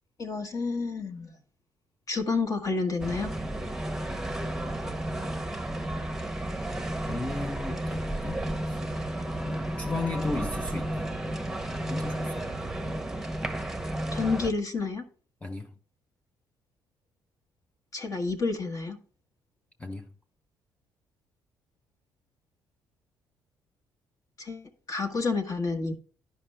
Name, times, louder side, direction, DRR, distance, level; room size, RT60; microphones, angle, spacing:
voice 1, 0.2-1.3 2.1-3.3 14.1-15.0 17.9-19.0 24.4-25.9, left 4 dB, 45° left, 1.4 m, -29 dB
sound 1, 3.0-14.5, right 1 dB, 5° right, 0.9 m, -32 dB
voice 2, 7.1-8.8 9.4-11.1 11.9-12.5 15.4-15.7 19.8-20.1, left 3 dB, 15° left, 0.6 m, -35 dB
10.5 x 5.2 x 3.3 m
supercardioid pair, 70°, 8 cm